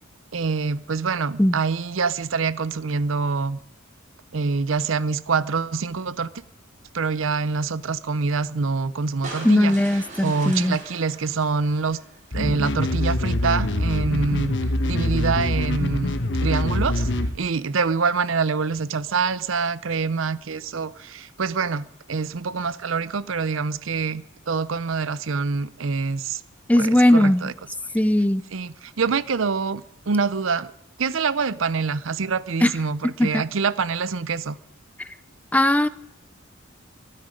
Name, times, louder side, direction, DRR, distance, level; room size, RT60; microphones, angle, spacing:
voice 1, 0.3-3.6 4.3-6.4 6.9-9.7 10.2-12.0 12.3-14.5 14.8-17.1 17.3-26.4 26.7-27.5 28.5-30.7 31.0-34.6, right 4 dB, 75° right, 0.6 m, -25 dB
sound 1, 9.2-12.5, right 2 dB, 40° right, 4.3 m, -40 dB
voice 2, 9.4-10.8 26.7-27.5 27.9-28.4 32.6-32.7 33.2-33.4 35.5-35.9, left 1 dB, 5° left, 0.5 m, -18 dB
sound 2, 12.3-17.3, left 1 dB, 60° left, 1.3 m, -24 dB
22.5 x 12.5 x 5.1 m
head